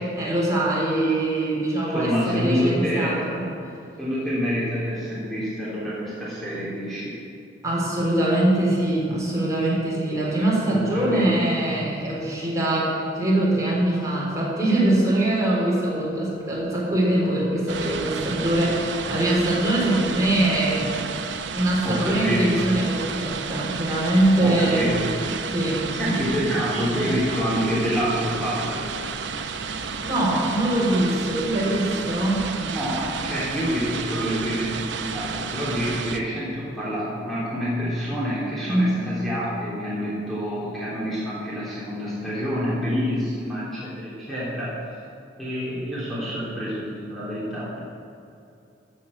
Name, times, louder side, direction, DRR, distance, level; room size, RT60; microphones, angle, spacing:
voice 1, 0.1-2.1 2.3-3.5 7.6-20.9 21.5-24.9 25.5-25.8 30.0-32.5 38.7-38.9, right 1 dB, 20° right, -6 dB, 4.2 m, -23 dB
voice 2, 1.8-3.2 4.0-7.1 10.7-11.5 21.8-22.6 24.4-25.1 25.9-28.9 32.6-44.7 45.4-47.8, equal, ahead, -9 dB, 3.4 m, -27 dB
sound 1, 17.7-36.2, right 5 dB, 80° right, 0.8 m, -31 dB
14.5 x 7.4 x 8.7 m, 2.7 s
head